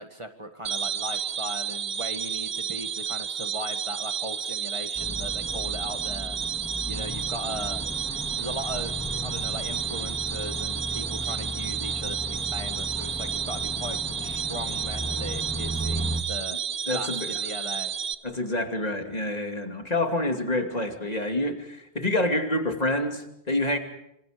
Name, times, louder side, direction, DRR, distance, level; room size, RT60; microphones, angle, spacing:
voice 1, 0.0-6.4 6.9-7.8 8.4-8.9 9.2-16.6 16.9-17.9, equal, 30° right, 6 dB, 1.8 m, -38 dB
sound 1, 0.6-18.1, right 8 dB, 70° right, 1.3 m, -31 dB
sound 2, 4.9-16.2, equal, 5° left, 2.0 m, -35 dB
voice 2, 16.9-17.4 18.2-23.8, left 1 dB, 35° left, 4 dB, 2.8 m, -27 dB
27.0 x 27.0 x 5.2 m, 0.80 s
omnidirectional pair, 1.1 m